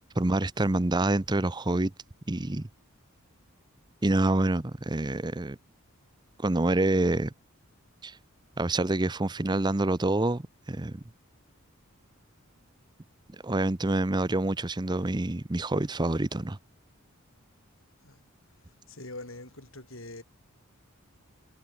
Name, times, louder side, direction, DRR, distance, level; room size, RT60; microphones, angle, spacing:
voice 1, 0.2-1.9 2.3-2.7 4.0-5.6 6.4-7.3 8.0-8.2 8.6-11.0 13.4-16.6, right 2 dB, 20° right, 0.7 m, -27 dB
voice 2, 18.9-20.2, left 2 dB, 65° left, 6.4 m, -43 dB
head